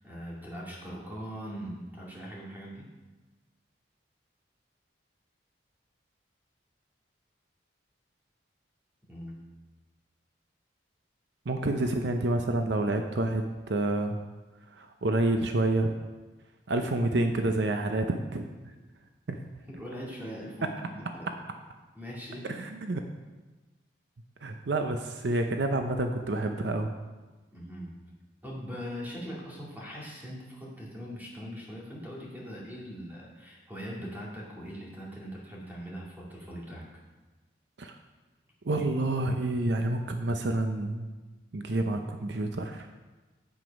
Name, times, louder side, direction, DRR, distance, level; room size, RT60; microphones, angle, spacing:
voice 1, 0.0-2.9 9.1-9.5 19.7-21.3 22.0-22.5 27.5-27.9 28.4-36.8, equal, 10° right, -5 dB, 2.2 m, -41 dB
voice 2, 11.5-14.2 14.8-15.9 16.7-18.7 19.3-19.4 22.5-23.0 24.4-26.9 37.8-37.9 38.7-41.1 41.5-42.9, right 2 dB, 70° right, 5 dB, 0.6 m, -28 dB
8.1 x 7.7 x 5.2 m, 1.2 s
head